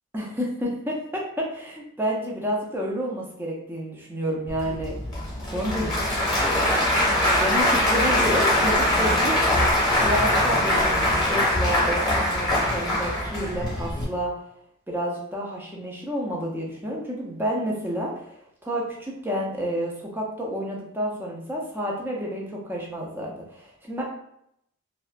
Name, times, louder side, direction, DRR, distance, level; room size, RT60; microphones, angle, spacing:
voice 1, 0.1-5.0 5.5-5.9 6.4-6.8 7.4-9.4 10.0-14.4 14.9-18.3 18.6-24.0, equal, 10° right, -3 dB, 0.4 m, -30 dB
Applause / Crowd, 4.5-14.0, left 1 dB, 20° left, 0.8 m, -22 dB
2.6 x 2.1 x 2.4 m, 0.76 s
head